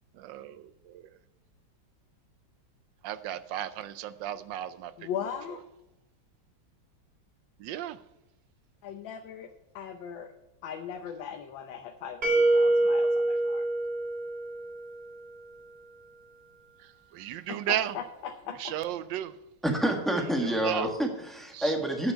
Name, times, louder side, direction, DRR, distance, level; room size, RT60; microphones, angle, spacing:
voice 1, 0.2-1.1 3.0-4.9 7.6-8.0 17.1-17.9 18.6-19.3 20.4-20.9 21.5-21.7, right 12 dB, 80° right, 14 dB, 1.2 m, -34 dB
voice 2, 5.0-5.6 8.8-10.3 10.6-13.7 17.5-18.7, left 8 dB, 85° left, 5 dB, 1.5 m, -39 dB
sound 1, 12.2-15.1, right 2 dB, 55° right, 2.2 m, -25 dB
voice 3, 19.6-22.1, right 1 dB, ahead, 2 dB, 1.3 m, -28 dB
9.4 x 6.2 x 8.3 m, 0.94 s
omnidirectional pair, 2.0 m